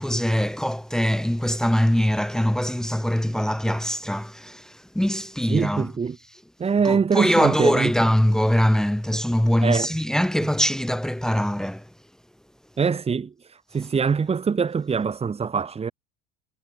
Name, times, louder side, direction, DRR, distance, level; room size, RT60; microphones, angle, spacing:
voice 1, 0.0-5.9 6.9-11.9, equal, 5° left, 1.8 m, -22 dB
voice 2, 5.5-6.2 6.6-7.9 9.6-9.9 10.4-10.5 12.8-13.3 13.7-15.9, right 6 dB, 30° right, 6.6 m, -23 dB
hypercardioid pair, 70°, 21 cm